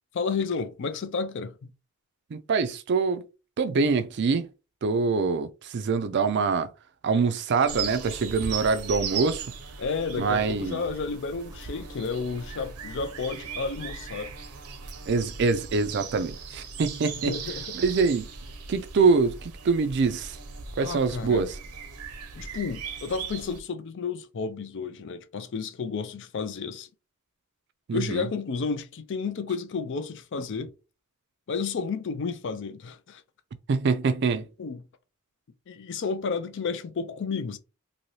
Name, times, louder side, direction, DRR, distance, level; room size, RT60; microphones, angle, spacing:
voice 1, 0.1-1.7 9.8-14.3 17.2-17.8 20.8-21.5 22.4-26.9 27.9-30.7 31.5-33.2 34.6-34.8 35.7-37.6, left 5 dB, 55° left, 0.4 m, -32 dB
voice 2, 2.3-3.2 3.6-4.5 4.8-6.7 7.0-9.5 10.2-10.8 15.1-17.4 17.7-18.3 18.7-20.4 20.8-21.6 27.9-28.3 33.7-34.5, right 4 dB, 50° right, 0.4 m, -24 dB
sound 1, 7.7-23.6, right 5 dB, 85° right, 0.7 m, -38 dB
2.7 x 2.6 x 3.1 m
head